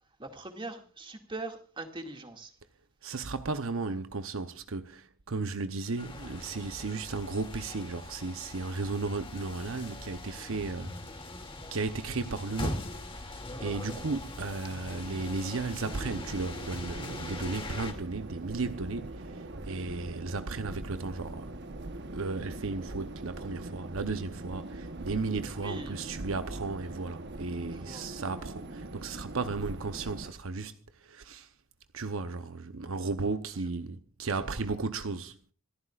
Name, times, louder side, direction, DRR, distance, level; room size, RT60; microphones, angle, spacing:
voice 1, 0.2-2.5 25.6-26.0 27.7-28.1 34.4-34.6, right 2 dB, 25° right, 2.2 m, -42 dB
voice 2, 3.0-11.2 11.7-21.5 22.1-31.5 31.9-35.4, right 3 dB, 70° right, 0.8 m, -35 dB
sound 1, 6.0-17.9, left 1 dB, 25° left, 2.5 m, -41 dB
sound 2, 15.8-30.3, right 2 dB, 55° right, 1.1 m, -42 dB
26.5 x 14.0 x 2.5 m
head